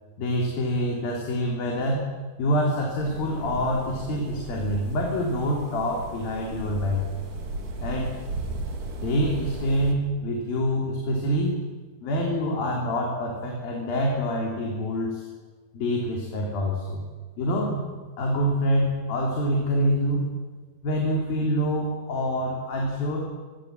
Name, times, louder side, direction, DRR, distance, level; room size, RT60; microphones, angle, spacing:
voice 1, 0.2-7.1 7.8-8.1 8.5-8.6 9.0-11.6 12.0-15.3 15.7-17.1 17.4-20.3 20.8-23.2, equal, 65° left, -1 dB, 5.3 m, -26 dB
sound 1, 3.0-9.9, right 3 dB, 55° right, 4.4 m, -35 dB
27.5 x 22.5 x 7.7 m, 1.4 s
omnidirectional pair, 4.5 m